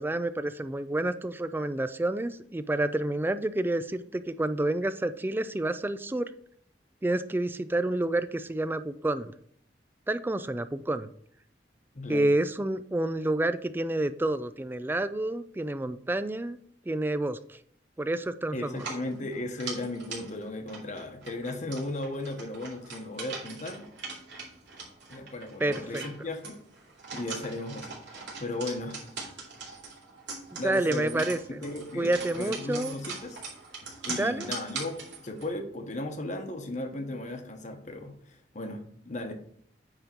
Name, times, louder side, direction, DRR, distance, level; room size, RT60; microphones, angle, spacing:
voice 1, 0.0-6.3 7.0-9.3 10.1-11.1 12.1-16.6 16.9-17.6 18.0-18.9 25.6-26.0 30.5-31.6 32.0-32.9 34.2-34.5, right 1 dB, 10° right, 12 dB, 0.3 m, -29 dB
voice 2, 11.9-12.3 18.5-23.9 25.1-26.6 27.1-29.1 30.6-31.2 31.5-33.4 34.0-34.9 35.2-39.3, left 2 dB, 45° left, 5 dB, 1.1 m, -36 dB
sound 1, 18.7-35.5, right 4 dB, 85° right, 2.7 m, -42 dB
9.0 x 3.7 x 4.5 m, 0.62 s
head